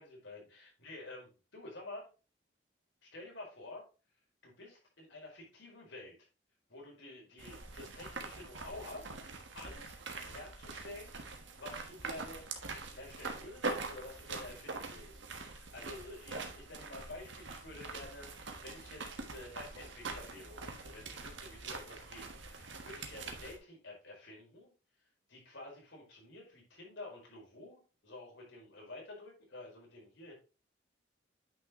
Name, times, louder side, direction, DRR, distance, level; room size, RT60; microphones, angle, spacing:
voice 1, 0.0-2.1 3.0-3.8 4.4-6.2 6.7-9.2 9.5-10.0 10.2-12.4 12.9-24.7 25.3-30.3, left 2 dB, 85° left, -2 dB, 4.4 m, -50 dB
sound 1, 7.4-23.6, right 3 dB, 80° right, 1.3 m, -44 dB
9.1 x 5.8 x 3.0 m, 0.33 s
head